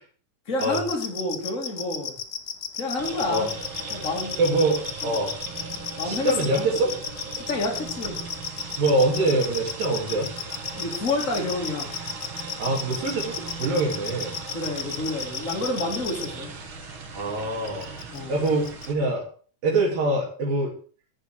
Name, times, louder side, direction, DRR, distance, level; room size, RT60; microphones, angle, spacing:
voice 1, 0.5-2.2 2.8-3.5 3.9-4.4 5.0-5.2 6.0-6.7 7.4-8.2 10.7-11.9 14.5-16.5 18.1-18.5, left 2 dB, 25° left, 0 dB, 3.2 m, -29 dB
sound 1, 0.6-16.3 17.7-18.2 18.4-18.9, left 7 dB, 90° left, 0.9 m, -33 dB
sound 2, 3.0-18.9, right 4 dB, 45° right, 2.1 m, -38 dB
voice 2, 4.4-5.3 6.0-6.9 8.8-10.3 12.6-14.4 17.1-17.9 18.3-19.2 19.6-20.7, right 2 dB, 90° right, -3 dB, 4.5 m, -24 dB
12.0 x 8.2 x 6.3 m, 0.42 s
omnidirectional pair, 3.9 m